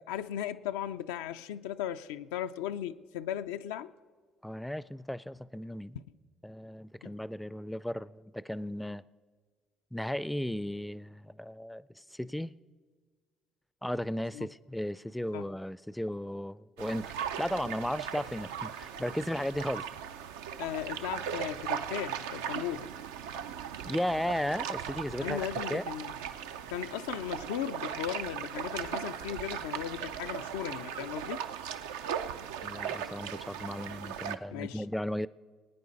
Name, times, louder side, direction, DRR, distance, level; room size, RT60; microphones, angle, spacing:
voice 1, 0.0-3.9 7.0-7.1 14.3-14.5 15.3-15.5 20.6-22.9 25.2-26.1 26.7-31.4 34.5-34.8, left 11 dB, 85° left, 0.4 m, -37 dB
voice 2, 4.4-6.0 6.4-9.0 9.9-12.5 13.8-17.1 17.4-19.8 23.8-25.4 25.7-25.8 32.6-35.3, left 1 dB, 5° left, 0.4 m, -35 dB
sound 1, 16.8-34.4, right 8 dB, 85° right, 0.5 m, -38 dB
20.5 x 9.5 x 4.0 m
hypercardioid pair, 60°, 0 cm